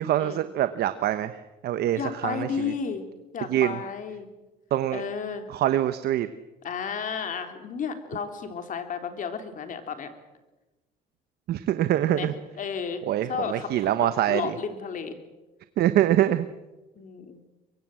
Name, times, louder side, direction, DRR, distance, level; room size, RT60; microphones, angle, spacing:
voice 1, 0.0-2.7 3.5-3.8 4.7-5.0 5.5-6.3 11.5-12.3 13.1-14.5 15.8-16.4, right 12 dB, 70° right, 11 dB, 1.1 m, -24 dB
voice 2, 1.9-3.0 3.3-4.3 4.9-5.5 6.6-10.1 12.1-12.3 12.6-13.0 13.3-15.2 17.0-17.4, left 6 dB, 50° left, 7 dB, 3.5 m, -33 dB
23.5 x 23.0 x 7.8 m, 1.1 s
cardioid pair, 110°, 17 cm